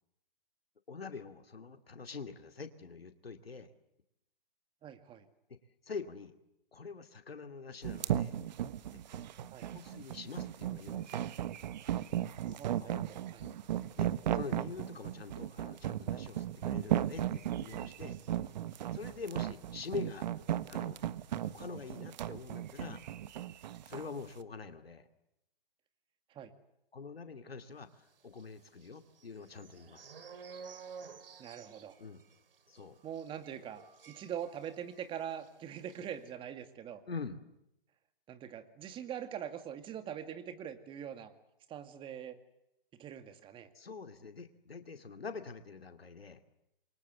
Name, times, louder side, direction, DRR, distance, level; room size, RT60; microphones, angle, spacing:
voice 1, 0.9-3.7 5.8-6.3 6.7-8.4 8.9-9.2 9.7-11.2 12.4-13.0 13.4-13.5 14.0-18.2 18.9-20.3 20.7-21.0 21.4-23.0 23.8-25.1 26.9-30.1 32.0-32.2 32.7-33.0 37.1-37.4 43.7-46.4, left 4 dB, 90° left, 8 dB, 2.5 m, -45 dB
voice 2, 4.8-5.3 9.5-9.7 12.5-13.4 26.3-26.5 31.4-32.0 33.0-37.0 38.3-41.3 41.7-42.4 43.0-43.7, right 9 dB, 15° right, 9 dB, 2.1 m, -43 dB
sound 1, 7.8-24.1, right 11 dB, 50° right, 1.3 m, -36 dB
sound 2, 28.3-35.0 35.3-35.5 35.8-36.1, right 6 dB, 70° right, 2.7 m, -52 dB
28.5 x 23.5 x 8.2 m, 0.84 s
hypercardioid pair, 135°, 29 cm